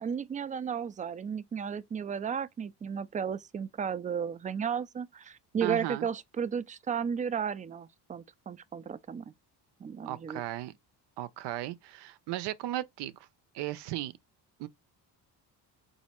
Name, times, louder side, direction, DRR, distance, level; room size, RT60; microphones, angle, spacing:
voice 1, 0.0-9.2 9.8-10.4, right 7 dB, 20° right, 0.3 m, -34 dB
voice 2, 5.6-6.1 10.1-10.7 11.2-13.1 13.5-14.1 14.6-14.7, right 14 dB, 80° right, 0.6 m, -35 dB
4.1 x 2.7 x 4.3 m
cardioid pair, 110°, 41 cm